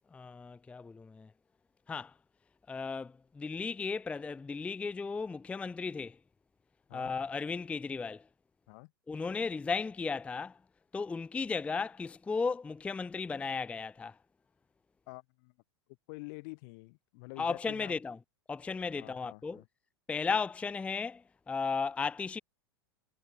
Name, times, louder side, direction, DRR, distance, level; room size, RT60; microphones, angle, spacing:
voice 1, 0.1-1.3 1.9-2.1 2.7-6.2 6.9-8.3 9.1-10.6 10.9-14.2 17.4-18.2 18.5-19.6 20.1-22.4, left 5 dB, 10° left, 0.4 m, -35 dB
voice 2, 15.1-15.5 16.1-18.0 19.0-19.7, left 30 dB, 50° left, 0.8 m, -47 dB
figure-of-eight pair, 90°, 13 cm